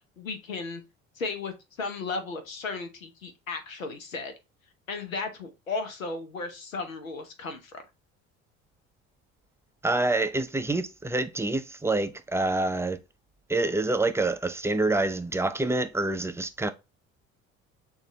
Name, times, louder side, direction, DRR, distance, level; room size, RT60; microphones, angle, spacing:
voice 1, 0.2-0.8 1.2-4.3 4.9-7.8, left 4 dB, 85° left, 0.9 m, -35 dB
voice 2, 9.8-13.0 13.5-16.7, right 2 dB, 5° right, 0.4 m, -27 dB
6.3 x 2.5 x 3.0 m
figure-of-eight pair, 60°, 39 cm